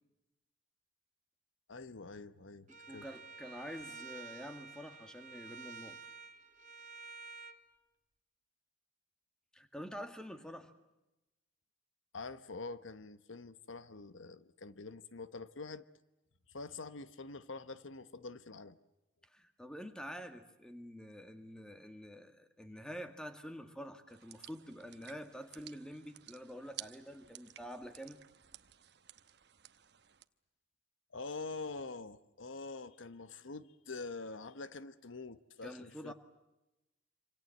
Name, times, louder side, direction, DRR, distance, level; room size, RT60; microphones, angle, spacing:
voice 1, 1.7-2.7 2.9-3.1 12.1-15.8 16.5-18.8 31.1-36.1, left 3 dB, 75° left, 1.1 m, -45 dB
voice 2, 2.7-6.0 9.5-10.7 19.2-28.2 35.6-36.1, equal, 5° left, 1.9 m, -47 dB
Bowed string instrument, 2.7-7.6, right 4 dB, 40° right, 1.7 m, -50 dB
sound 1, 24.1-30.2, right 12 dB, 55° right, 1.0 m, -54 dB
27.0 x 26.5 x 7.8 m
head